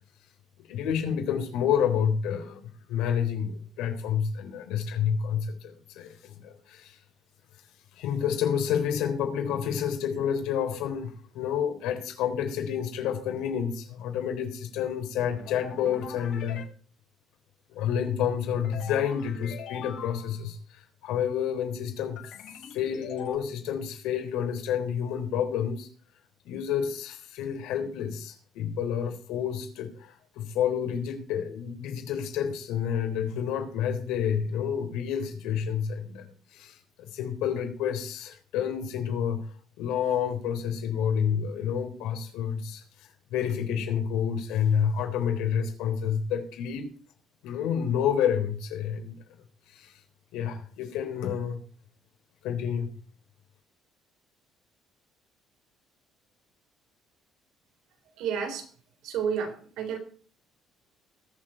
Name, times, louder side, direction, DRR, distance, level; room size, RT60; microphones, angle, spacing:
voice 1, 0.7-7.0 7.9-16.6 17.7-22.2 22.7-25.9 26.4-46.9 47.4-49.1 49.7-50.0 50.3-51.6 52.4-52.9, left 8 dB, 90° left, 3.7 m, -29 dB
sound 1, 15.2-16.6 18.6-20.4 22.2-23.4, left 7 dB, 60° left, 7.3 m, -42 dB
voice 2, 58.2-58.7 59.0-60.0, right 7 dB, 70° right, 3.8 m, -30 dB
20.5 x 7.6 x 4.5 m
cardioid pair, 165°, 0 cm